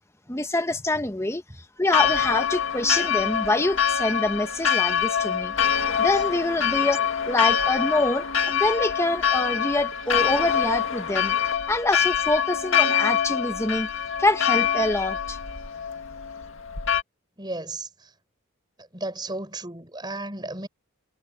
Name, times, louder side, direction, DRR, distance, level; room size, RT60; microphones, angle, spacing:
voice 1, 0.3-1.4 1.8-5.5 6.0-11.4 11.7-13.9 14.2-15.4, left 2 dB, 15° left, 1.0 m, -25 dB
Church bell, 1.9-17.0, left 8 dB, 65° left, 2.0 m, -25 dB
voice 2, 17.4-18.1 18.8-20.7, right 2 dB, 20° right, 6.3 m, -34 dB
head